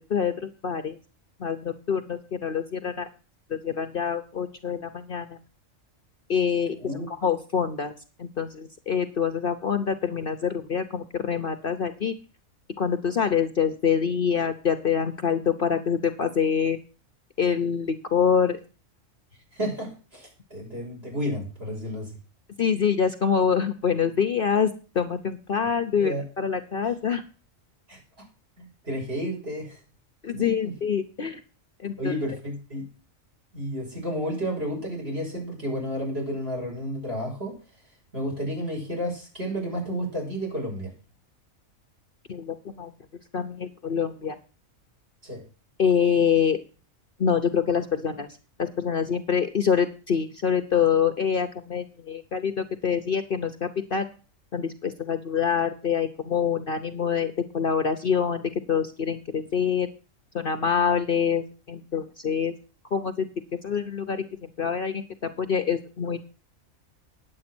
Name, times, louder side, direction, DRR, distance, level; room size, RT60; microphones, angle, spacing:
voice 1, 0.1-1.0 1.4-3.1 3.5-5.4 6.3-6.8 7.1-7.9 8.2-12.1 12.8-16.8 17.4-18.6 22.6-27.2 30.2-31.4 31.8-32.1 42.3-42.9 43.3-44.4 45.8-46.6 47.2-48.3 48.6-54.1 54.5-58.4 58.7-59.9 60.3-62.5 62.9-63.3 63.6-65.0 65.4-66.2, left 7 dB, 45° left, 9 dB, 0.9 m, -25 dB
voice 2, 19.5-22.2 26.0-26.2 27.9-28.0 28.6-29.8 30.3-30.7 32.0-32.9 33.5-37.6 38.1-40.9 45.2-45.4, equal, 50° right, -1 dB, 6.6 m, -31 dB
9.9 x 8.2 x 6.1 m, 0.36 s
omnidirectional pair, 1.4 m